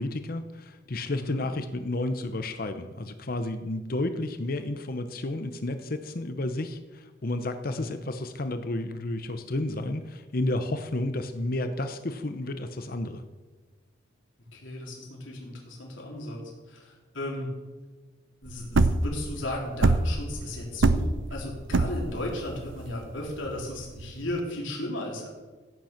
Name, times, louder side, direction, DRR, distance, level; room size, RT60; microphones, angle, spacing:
voice 1, 0.0-13.2, left 2 dB, 50° left, 8 dB, 0.8 m, -31 dB
voice 2, 1.1-1.5 7.7-7.8 14.5-16.4 16.7-17.6 18.4-25.3, left 1 dB, 85° left, -2 dB, 3.7 m, -35 dB
sound 1, 18.5-24.4, right 3 dB, 80° right, 0.7 m, -24 dB
15.5 x 9.1 x 5.9 m, 1.3 s
head